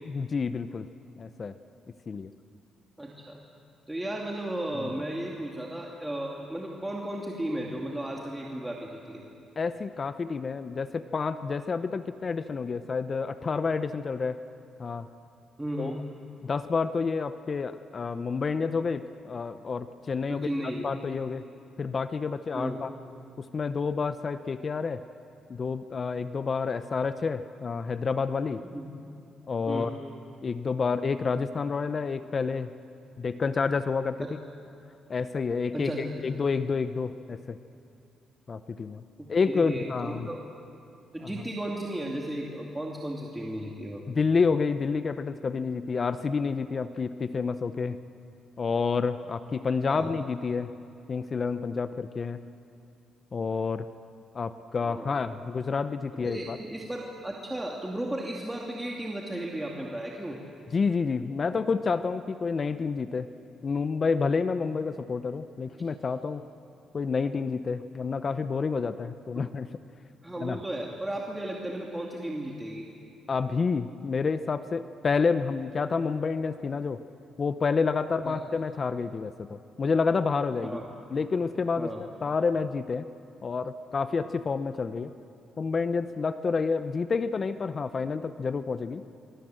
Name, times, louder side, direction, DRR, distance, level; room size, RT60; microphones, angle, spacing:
voice 1, 0.1-0.9 1.2-1.6 2.1-2.3 4.7-4.9 9.6-14.4 14.8-15.1 15.8-15.9 16.4-20.5 20.8-21.4 21.8-22.9 23.4-25.0 25.5-28.6 29.5-29.9 30.4-32.7 33.2-34.3 35.1-37.6 38.5-39.0 39.3-40.3 41.2-41.3 44.1-48.0 48.6-50.7 51.1-52.4 53.3-53.9 54.3-56.6 60.7-63.3 63.6-66.4 66.9-69.7 70.4-70.6 73.3-77.0 77.4-80.8 81.1-83.1 83.4-85.1 85.6-89.0, left 5 dB, 40° left, 11 dB, 0.7 m, -29 dB
voice 2, 3.0-3.4 3.9-9.2 15.6-16.0 20.3-20.9 22.5-22.8 28.6-28.9 29.7-29.9 34.2-34.3 35.7-36.2 39.2-40.4 41.1-44.0 49.9-50.1 54.8-55.1 56.2-60.4 69.4-69.5 70.2-72.9 78.2-78.4 80.6-80.9 81.8-82.0, right 1 dB, 10° right, -2 dB, 2.5 m, -35 dB
25.5 x 24.5 x 7.7 m, 2.6 s
cardioid pair, 90°, 0 cm